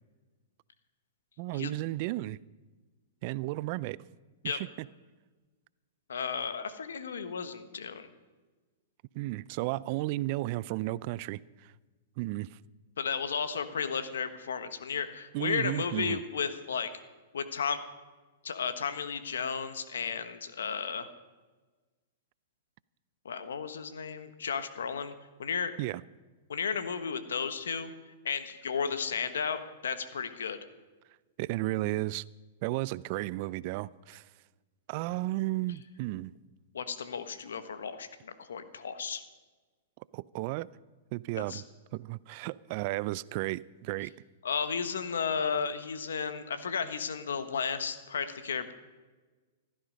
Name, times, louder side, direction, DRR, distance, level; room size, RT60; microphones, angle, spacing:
voice 1, 1.4-2.4 3.2-4.0 4.4-4.9 9.1-11.7 12.2-12.6 15.3-16.2 25.8-26.0 31.4-32.2 32.6-34.3 34.9-36.3 40.1-40.7 41.1-41.6 41.9-44.1, right 18 dB, 50° right, 0.4 m, -33 dB
voice 2, 6.1-8.1 13.0-16.9 17.3-17.8 18.4-21.1 23.2-25.1 25.4-25.7 26.5-27.9 28.2-30.6 36.7-39.2 41.5-41.6 44.4-48.7, left 6 dB, 80° left, 1.2 m, -33 dB
15.5 x 13.0 x 5.2 m
hypercardioid pair, 120°, 0 cm